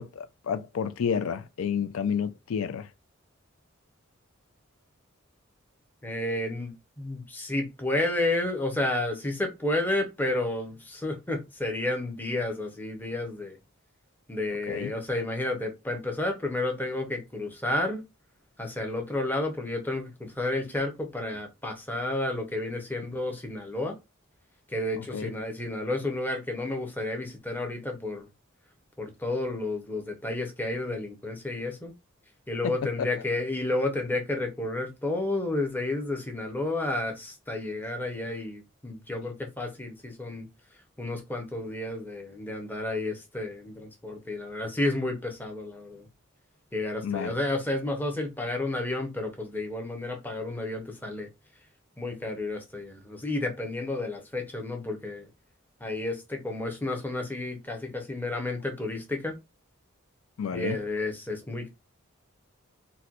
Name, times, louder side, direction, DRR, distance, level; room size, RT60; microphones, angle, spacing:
voice 1, 0.0-2.9 14.7-14.9 25.1-25.3 32.6-33.1 47.0-47.3 60.4-60.8, left 7 dB, 80° left, 0.4 m, -30 dB
voice 2, 6.0-13.6 14.3-18.0 18.6-23.9 24.7-28.3 29.0-31.9 32.5-40.5 41.0-46.1 46.7-51.3 52.0-55.3 55.8-59.4 60.5-61.7, left 2 dB, 10° left, 0.6 m, -31 dB
4.2 x 2.2 x 2.4 m
head